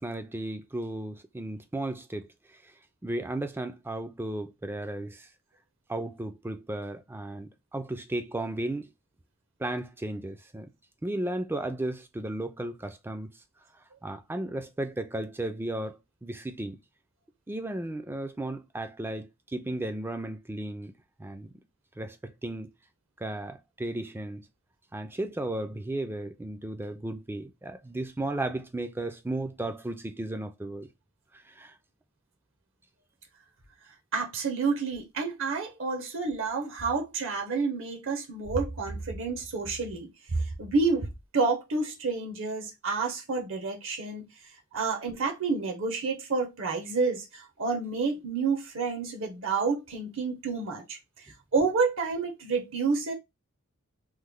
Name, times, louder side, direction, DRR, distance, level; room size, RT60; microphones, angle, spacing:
voice 1, 0.0-2.7 3.0-5.3 5.9-8.9 9.6-10.7 11.0-13.3 14.0-16.8 17.5-20.9 21.2-21.6 22.0-22.7 23.2-24.5 24.9-30.9 31.3-31.7, right 1 dB, 10° right, 0.3 m, -35 dB
voice 2, 34.1-44.2 44.7-51.0 51.5-53.1, right 4 dB, 65° right, 0.8 m, -29 dB
3.2 x 2.1 x 3.5 m
head